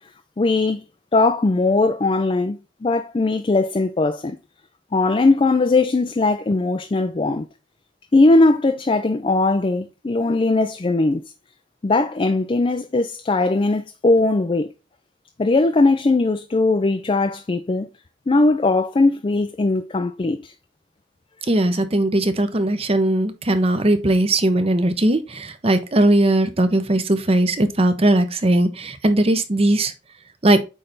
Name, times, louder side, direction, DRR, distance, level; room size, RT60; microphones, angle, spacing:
voice 1, 0.4-0.8 1.1-4.4 4.9-7.5 8.1-11.3 11.8-14.7 15.4-17.9 18.3-20.5, left 2 dB, 30° left, 0.4 m, -19 dB
voice 2, 21.5-29.9 30.4-30.6, right 1 dB, 30° right, 0.7 m, -19 dB
8.5 x 3.3 x 3.9 m
head